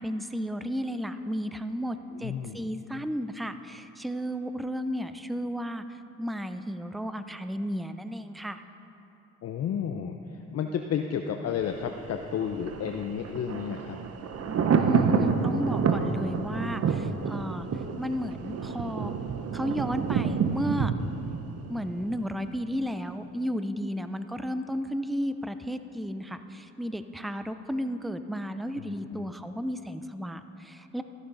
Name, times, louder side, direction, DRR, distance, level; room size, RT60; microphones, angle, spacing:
voice 1, 0.0-5.8 6.2-8.6 14.7-17.7 18.0-19.1 19.5-20.9 21.7-31.0, equal, ahead, 10 dB, 0.4 m, -33 dB
voice 2, 2.2-2.7 9.4-14.0 28.8-29.3, left 8 dB, 55° left, 4 dB, 0.6 m, -32 dB
Thunder, 11.6-22.5 22.8-22.9, right 5 dB, 50° right, 0.8 m, -29 dB
14.5 x 11.0 x 3.9 m, 2.9 s
cardioid pair, 90°, 30 cm